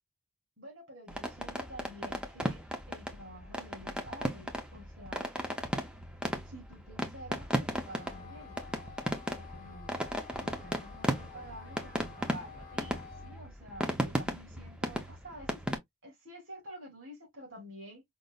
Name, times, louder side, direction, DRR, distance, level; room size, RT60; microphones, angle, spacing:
voice 1, 0.6-2.6 2.9-5.2 6.5-8.6 9.3-9.9 10.4-15.6 16.0-18.0, equal, 55° right, 2.5 m, -49 dB
sound 1, 1.1-15.8, equal, 5° right, 0.6 m, -36 dB
Wind instrument woodwind instrument, 7.7-13.4, left 7 dB, 40° left, 1.0 m, -52 dB
5.2 x 2.6 x 2.3 m
head